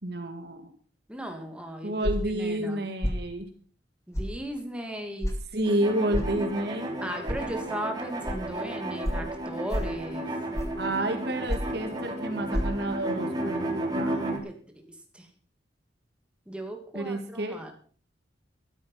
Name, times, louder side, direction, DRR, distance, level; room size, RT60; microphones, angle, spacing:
voice 1, 0.0-0.6 1.8-3.4 5.5-7.0 10.8-14.2 16.9-17.6, right 1 dB, 60° right, 5 dB, 2.1 m, -30 dB
voice 2, 1.1-2.8 4.1-5.3 7.0-10.3 14.1-14.9 15.1-15.3 16.5-17.7, right 1 dB, 5° right, 4 dB, 2.7 m, -37 dB
sound 1, 2.0-2.4 3.0-3.2 4.1-4.3 5.2-5.4 6.1-6.3 7.3-7.4 8.2-8.4 9.0-9.3 9.7-10.0 10.5-10.8 11.5-11.8 12.5-12.6, equal, 15° left, 2.3 m, -28 dB
sound 2, 5.6-14.4, right 1 dB, 20° right, 3.2 m, -33 dB
13.5 x 12.5 x 5.7 m, 0.44 s
head